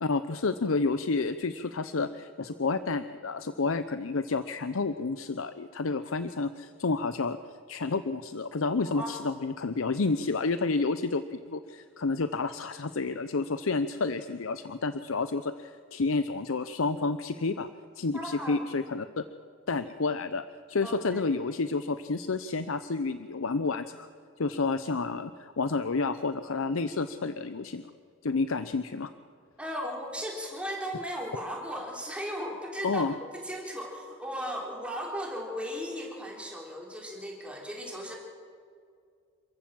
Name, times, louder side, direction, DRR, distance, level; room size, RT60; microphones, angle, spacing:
voice 1, 0.0-7.4 7.7-17.7 18.0-19.2 19.7-24.1 24.4-27.9 28.2-29.1 32.8-33.1, left 3 dB, 80° left, 12 dB, 0.7 m, -30 dB
voice 2, 18.1-18.6 20.8-21.2 29.6-33.0 33.3-38.2, equal, 5° right, -1 dB, 3.6 m, -36 dB
27.5 x 14.5 x 7.7 m, 2.2 s
head